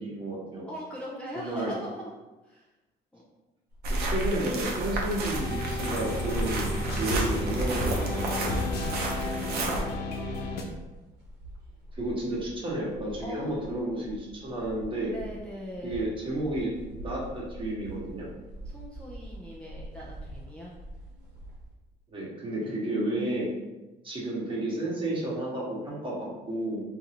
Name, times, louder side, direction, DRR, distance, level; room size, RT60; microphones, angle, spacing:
voice 1, 0.0-0.7 1.3-1.7 3.9-8.5 12.0-15.1 15.8-16.7 17.0-18.3 22.1-23.5 24.0-26.8, right 1 dB, 30° right, -5 dB, 1.2 m, -32 dB
voice 2, 0.7-2.1 2.4-2.8 3.1-3.2 9.2-10.6 13.2-13.7 15.1-16.1 18.6-20.7 22.6-22.8, equal, 5° left, -6 dB, 0.5 m, -41 dB
sound 1, 3.7-21.7, right 1 dB, 85° right, 1.0 m, -45 dB
sound 2, 3.8-9.8, right 2 dB, 70° right, 0.7 m, -31 dB
sound 3, 5.3-10.6, left 1 dB, 70° left, 0.7 m, -32 dB
3.8 x 2.6 x 2.8 m, 1.1 s
cardioid pair, 110°, 17 cm